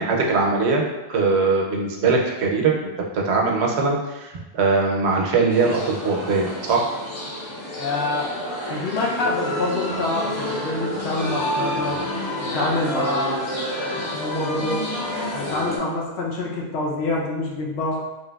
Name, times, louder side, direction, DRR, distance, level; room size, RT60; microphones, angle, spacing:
voice 1, 0.0-2.7 3.1-6.8, right 4 dB, 90° right, 0 dB, 0.9 m, -21 dB
sound 1, 5.5-15.8, left 1 dB, 35° left, 0.6 m, -29 dB
voice 2, 7.8-8.4 8.7-12.0 12.4-13.4 14.1-14.8 15.3-18.0, left 2 dB, 80° left, -2 dB, 0.9 m, -26 dB
3.2 x 2.5 x 2.2 m, 1.1 s
omnidirectional pair, 1.1 m